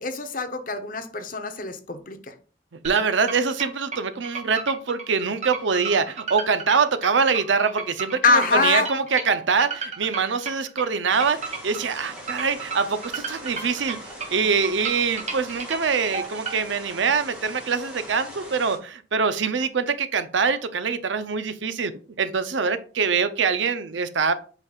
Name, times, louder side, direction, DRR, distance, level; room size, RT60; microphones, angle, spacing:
voice 1, 0.0-2.3 8.2-8.9, left 3 dB, 45° left, 0.8 m, -24 dB
sound 1, 2.8-16.6, right 4 dB, 40° right, 1.6 m, -33 dB
voice 2, 2.8-21.9 22.2-24.3, right 5 dB, 85° right, 0.6 m, -24 dB
sound 2, 11.1-18.8, equal, 5° right, 2.4 m, -41 dB
8.1 x 5.2 x 2.4 m
head